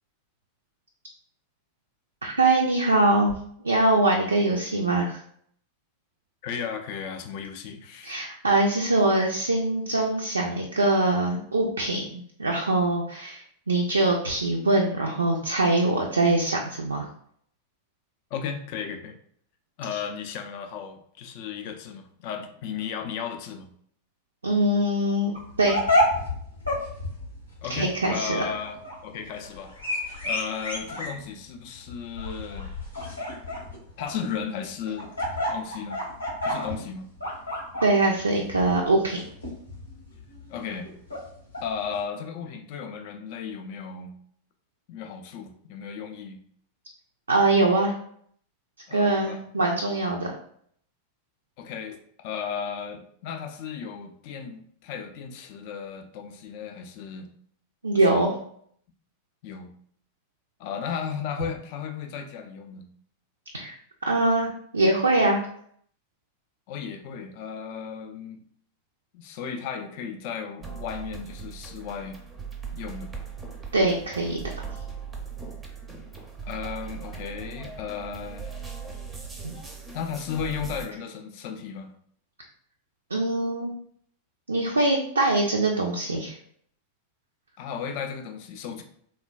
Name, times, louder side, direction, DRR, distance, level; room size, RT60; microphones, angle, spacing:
voice 1, 2.2-3.3 3.6-5.2 8.0-17.1 24.4-25.3 25.6-25.8 27.7-28.4 37.8-39.2 47.3-48.0 48.9-50.4 57.8-58.3 63.5-63.8 64.1-65.4 73.7-74.6 79.4-79.5 83.1-83.7 84.5-86.4, right 2 dB, 75° right, 0 dB, 0.3 m, -23 dB
voice 2, 6.4-8.2 18.3-19.2 19.8-23.7 27.6-28.8 29.0-29.7 30.2-32.8 34.0-35.1 35.5-36.0 36.4-37.1 40.5-40.9 41.6-44.1 44.9-46.4 48.9-49.4 51.6-57.3 58.1-58.3 59.4-59.7 60.6-62.9 66.7-68.4 69.1-72.2 72.7-73.1 76.4-78.5 79.9-81.9 87.6-88.8, left 7 dB, 45° left, 6 dB, 0.4 m, -35 dB
sound 1, 25.3-42.0, left 1 dB, 85° left, 0.9 m, -31 dB
sound 2, 70.6-80.9, right 6 dB, 15° right, 0.5 m, -39 dB
3.2 x 2.2 x 2.3 m, 0.64 s
figure-of-eight pair, 90°, 0 cm